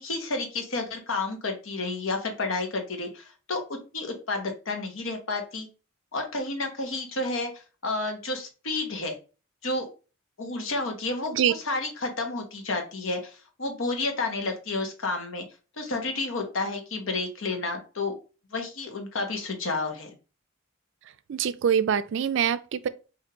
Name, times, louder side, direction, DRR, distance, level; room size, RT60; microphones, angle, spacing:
voice 1, 0.0-5.7 6.1-9.1 9.6-9.9 10.4-15.4 15.8-18.1 18.5-20.1, left 3 dB, 70° left, 1.0 m, -31 dB
voice 2, 21.3-22.9, right 8 dB, 60° right, 0.3 m, -24 dB
5.1 x 2.7 x 2.8 m
head